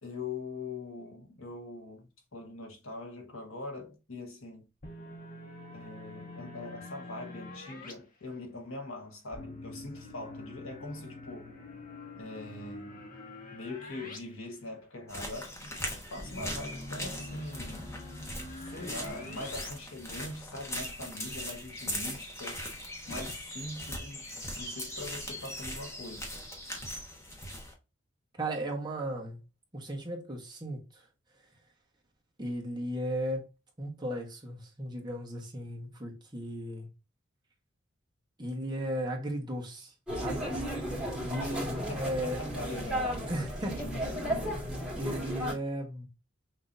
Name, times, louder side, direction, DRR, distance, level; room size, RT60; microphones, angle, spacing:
voice 1, 0.0-4.7 5.7-11.6 12.2-13.1 13.5-15.7 16.1-18.0 18.6-22.6 23.1-26.3 41.4-43.3 43.6-44.7, left 2 dB, 80° left, 1.5 m, -42 dB
sound 1, 4.8-7.9 9.3-14.2 14.5-14.6 16.2-19.7, left 2 dB, 45° left, 1.1 m, -45 dB
sound 2, 15.1-27.7, left 1 dB, 15° left, 1.1 m, -40 dB
voice 2, 28.4-29.4 29.7-31.0 32.4-33.5 33.8-36.9 38.4-40.5 41.2-41.6 41.9-42.4 43.3-43.8 45.0-46.1, right 1 dB, 20° right, 1.3 m, -35 dB
sound 3, 40.1-45.5, equal, 5° right, 1.9 m, -34 dB
6.0 x 2.9 x 2.6 m
head